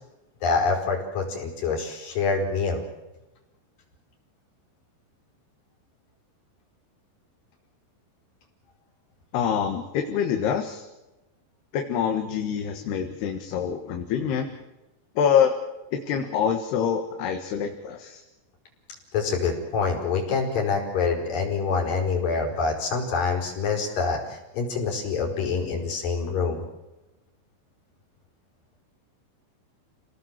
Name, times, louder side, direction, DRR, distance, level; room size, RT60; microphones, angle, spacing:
voice 1, 0.4-2.8 19.1-26.6, left 4 dB, 50° left, 1 dB, 6.5 m, -26 dB
voice 2, 9.3-10.8 11.7-14.5 15.2-15.5 15.9-18.2, left 8 dB, 65° left, 4 dB, 3.4 m, -25 dB
29.5 x 18.5 x 7.5 m, 1.0 s
omnidirectional pair, 5.4 m